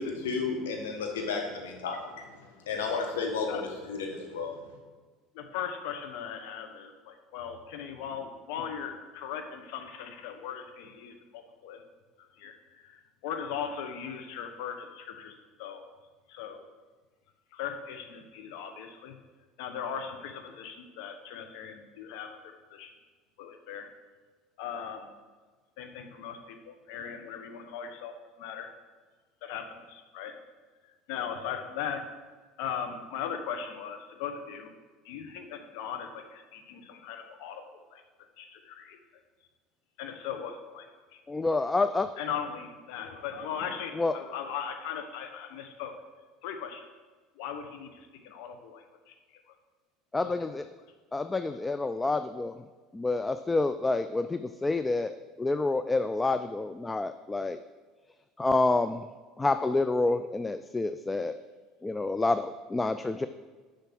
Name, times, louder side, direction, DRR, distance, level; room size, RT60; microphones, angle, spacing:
voice 1, 0.0-4.5, left 4 dB, 85° left, 2 dB, 1.4 m, -33 dB
voice 2, 5.3-11.8 12.2-15.3 15.6-15.9 16.3-16.7 17.5-19.2 19.6-22.9 23.4-23.9 24.6-25.1 25.8-28.7 29.4-30.3 31.1-32.0 32.6-34.7 35.0-37.6 37.9-38.0 38.4-39.0 40.0-40.9 41.1-41.2 42.2-45.9 46.4-46.8 47.4-49.1 50.2-50.5, left 7 dB, 70° left, 6 dB, 1.0 m, -38 dB
voice 3, 41.3-42.1 44.0-44.1 50.1-50.6 51.1-52.5 52.9-57.6 58.4-59.0 59.4-61.3 61.8-63.3, left 3 dB, 15° left, 10 dB, 0.3 m, -28 dB
6.8 x 5.7 x 6.1 m, 1.4 s
hypercardioid pair, 85°, 0 cm